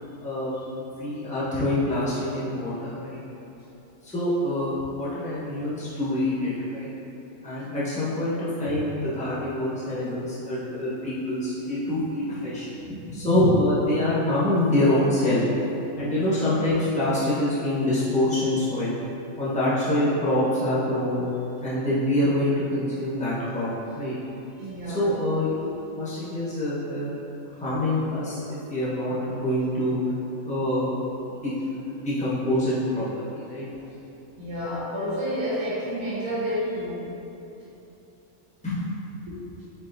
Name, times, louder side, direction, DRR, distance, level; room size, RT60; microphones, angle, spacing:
voice 1, 0.2-0.5 0.8-3.2 4.0-6.9 7.4-15.4 16.0-19.0 19.4-21.2 21.6-23.7 23.9-24.1 24.8-25.6 25.9-27.1 27.6-28.4 28.7-30.0 30.4-30.9 31.3-31.5 31.9-33.7 38.6-38.8, left 1 dB, 5° left, -10 dB, 0.9 m, -25 dB
voice 2, 24.6-25.0 34.4-37.1 39.3-39.4, equal, 80° right, -10 dB, 1.6 m, -29 dB
4.6 x 4.2 x 2.6 m, 3.0 s
omnidirectional pair, 1.4 m